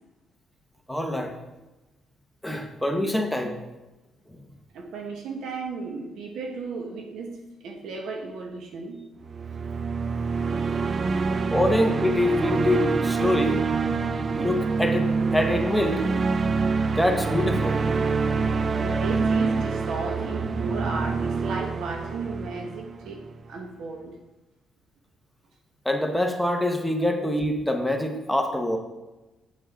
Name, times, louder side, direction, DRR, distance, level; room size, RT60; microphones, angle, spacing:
voice 1, 0.9-1.4 2.4-3.6 4.4-4.5 11.5-14.1 14.3-16.1 16.9-17.8 25.8-28.8, left 1 dB, 5° left, 4 dB, 1.1 m, -25 dB
voice 2, 4.7-9.1 10.5-11.6 18.7-24.1, right 4 dB, 80° right, 3 dB, 1.4 m, -35 dB
sound 1, 9.2-23.4, right 4 dB, 40° right, 0.4 m, -26 dB
7.9 x 7.7 x 3.8 m, 1.1 s
cardioid pair, 90°, 0 cm